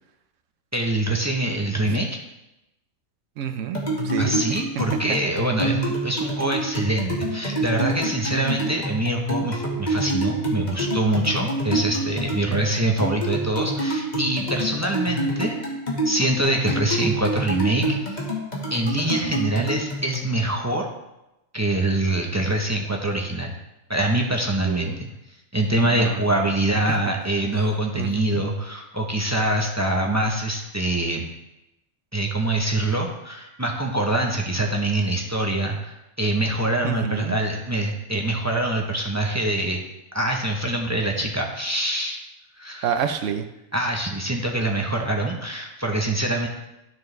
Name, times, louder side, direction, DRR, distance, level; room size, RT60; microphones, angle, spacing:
voice 1, 0.7-2.2 4.2-15.5 16.0-18.2 18.7-20.9 21.5-23.5 23.9-25.1 25.5-31.2 32.1-39.8 40.1-42.2 42.6-42.9 43.7-46.5, right 1 dB, 15° right, 1 dB, 0.5 m, -24 dB
voice 2, 3.4-4.4 8.3-8.7 12.5-12.9 24.6-25.0 25.8-26.3 26.9-27.0 27.6-27.7 27.9-28.4 36.8-37.4 42.8-43.5, right 8 dB, 70° right, 8 dB, 0.9 m, -29 dB
sound 1, 3.7-20.3, right 1 dB, 30° left, 1.6 m, -27 dB
12.5 x 4.7 x 3.2 m, 0.92 s
omnidirectional pair, 1.4 m